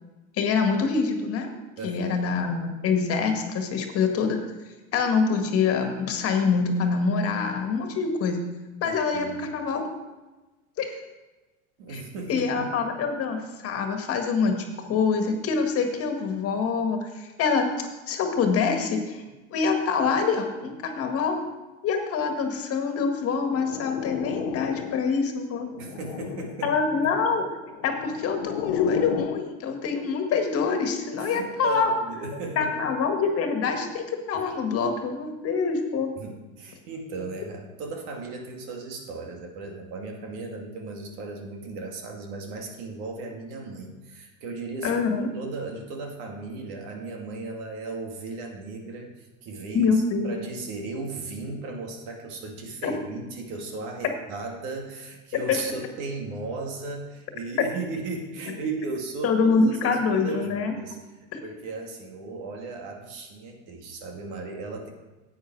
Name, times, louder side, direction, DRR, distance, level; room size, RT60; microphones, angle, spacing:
voice 1, 0.4-1.5 1.8-4.4 4.9-8.4 8.8-9.9 10.8-10.9 11.9-12.0 12.3-19.2 19.5-21.4 21.8-25.7 26.6-27.5 27.8-31.9 32.6-36.1 44.8-45.3 49.7-50.4 52.8-52.9 59.2-60.7 61.3-61.4, left 5 dB, 40° left, 5 dB, 1.7 m, -25 dB
voice 2, 1.8-2.3 8.8-9.4 11.8-12.7 25.8-26.7 27.0-27.1 31.2-32.7 34.3-34.4 36.2-45.0 45.3-49.9 50.2-61.0 61.4-64.9, right 3 dB, 65° right, 2 dB, 2.3 m, -36 dB
sound 1, 23.4-25.2 25.6-26.7 27.6-29.5, left 11 dB, 75° left, 0.8 m, -34 dB
10.5 x 8.7 x 4.7 m, 1.1 s
supercardioid pair, 125°, 35 cm